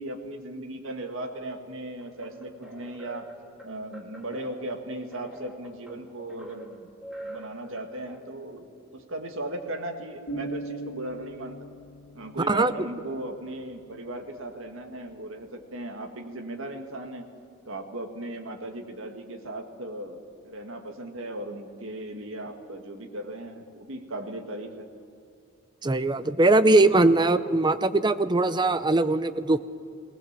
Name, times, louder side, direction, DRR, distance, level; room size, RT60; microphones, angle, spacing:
voice 1, 0.0-3.3 3.6-6.9 7.2-11.6 12.2-17.3 17.7-24.9, right 1 dB, 65° right, 4 dB, 2.0 m, -37 dB
sound 1, 2.0-8.2, right 1 dB, 5° right, 2.5 m, -45 dB
sound 2, 10.3-14.0, right 2 dB, 65° left, 3.6 m, -40 dB
voice 2, 25.8-29.6, right 2 dB, 20° right, 12 dB, 0.6 m, -21 dB
19.0 x 19.0 x 7.5 m, 2.5 s
head